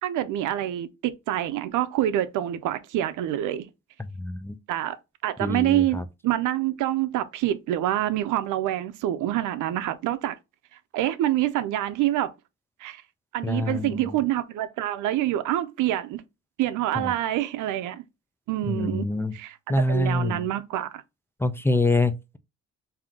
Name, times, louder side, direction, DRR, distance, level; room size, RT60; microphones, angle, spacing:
voice 1, 0.0-3.7 4.7-5.0 5.2-10.4 10.9-12.3 12.8-13.0 13.3-16.2 16.6-18.0 18.5-19.1 19.3-19.6 19.9-21.0, right 13 dB, 85° right, 0.6 m, -26 dB
voice 2, 4.0-4.6 5.4-6.0 13.4-14.2 17.0-17.1 18.6-19.3 19.7-20.5 21.4-22.4, left 2 dB, 10° left, 0.4 m, -26 dB
3.6 x 2.8 x 3.6 m
cardioid pair, 90°, 30 cm